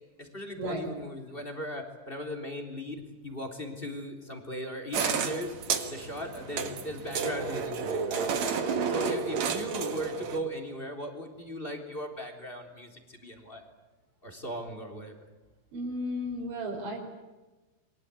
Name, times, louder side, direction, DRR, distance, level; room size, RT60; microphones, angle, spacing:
voice 1, 0.0-5.5 5.8-8.3 8.9-13.6 14.2-15.2, equal, 15° left, 5 dB, 3.1 m, -38 dB
sound 1, 4.9-10.4, right 5 dB, 50° right, 2.4 m, -31 dB
voice 2, 15.7-17.0, equal, 70° right, -1 dB, 7.5 m, -34 dB
29.0 x 24.0 x 8.4 m, 1.2 s
omnidirectional pair, 5.4 m